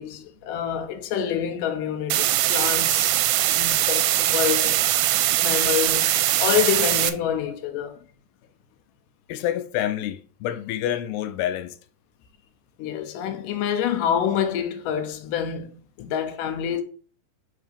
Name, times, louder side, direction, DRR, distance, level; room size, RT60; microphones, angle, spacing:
voice 1, 0.0-3.2 3.5-4.8 5.4-6.1 6.4-8.0 12.8-16.8, left 9 dB, 75° left, 2.2 m, -27 dB
sound 1, 2.1-7.1, right 13 dB, 85° right, 2.4 m, -21 dB
voice 2, 9.3-11.8 16.0-16.1, left 11 dB, 90° left, 2.5 m, -28 dB
7.8 x 2.9 x 5.1 m
omnidirectional pair, 4.3 m